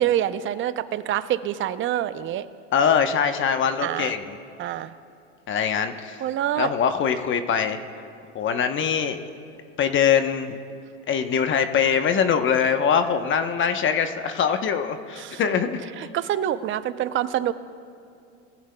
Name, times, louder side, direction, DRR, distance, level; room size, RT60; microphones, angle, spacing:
voice 1, 0.0-2.5 3.8-4.1 4.6-4.9 6.2-6.7 15.2-15.4 16.0-17.5, right 11 dB, 35° right, 14 dB, 0.6 m, -26 dB
voice 2, 2.7-4.4 5.5-6.2 6.6-7.8 8.3-9.2 9.8-10.6 11.1-15.8, left 7 dB, 35° left, 8 dB, 1.0 m, -23 dB
22.0 x 15.0 x 2.3 m, 2.5 s
hypercardioid pair, 95°, 35 cm